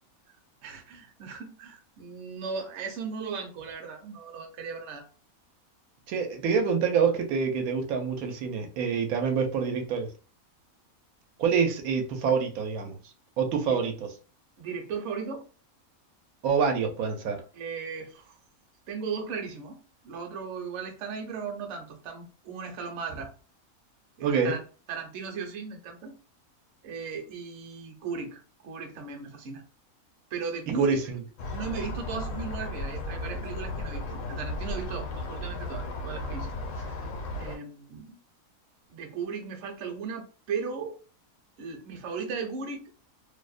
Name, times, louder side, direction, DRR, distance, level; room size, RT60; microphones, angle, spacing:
voice 1, 0.6-5.1 13.7-13.8 14.6-15.4 17.5-18.4 18.9-23.3 24.2-24.6 24.9-26.2 26.8-29.6 30.3-31.0 31.5-37.1 37.3-38.2 38.9-41.0 41.6-42.9, right 5 dB, 60° right, 0.9 m, -37 dB
voice 2, 6.1-10.1 11.4-13.0 13.4-14.1 16.4-17.4 24.2-24.5 30.7-31.2, right 6 dB, 90° right, 1.1 m, -26 dB
sound 1, 31.4-37.6, left 1 dB, 70° left, 0.9 m, -35 dB
2.7 x 2.0 x 2.3 m
omnidirectional pair, 1.5 m